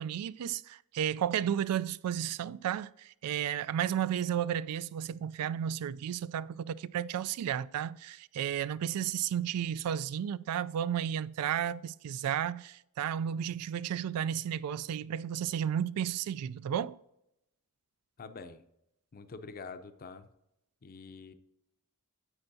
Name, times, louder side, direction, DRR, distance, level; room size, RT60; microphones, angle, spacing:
voice 1, 0.0-17.0, right 9 dB, 90° right, 0.3 m, -33 dB
voice 2, 18.2-18.6 19.1-20.3 20.8-21.3, left 4 dB, 40° left, 0.5 m, -46 dB
9.8 x 7.9 x 2.7 m
head